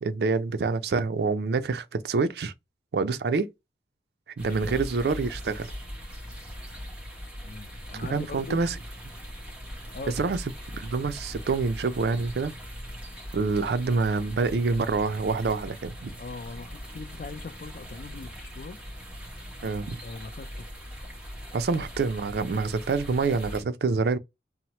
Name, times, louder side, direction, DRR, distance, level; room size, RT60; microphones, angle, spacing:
voice 1, 0.0-2.5 2.9-3.5 4.4-5.7 7.9-8.8 10.1-10.4 10.7-12.5 13.3-16.2 19.6-20.0 21.5-24.2, right 4 dB, 65° right, 0.4 m, -26 dB
voice 2, 4.4-4.8 7.4-8.6 9.9-10.4 16.2-18.8 20.0-20.6 21.7-21.8, left 4 dB, 50° left, 0.3 m, -41 dB
sound 1, 4.4-23.6, equal, 5° right, 0.8 m, -40 dB
2.9 x 2.0 x 2.8 m
head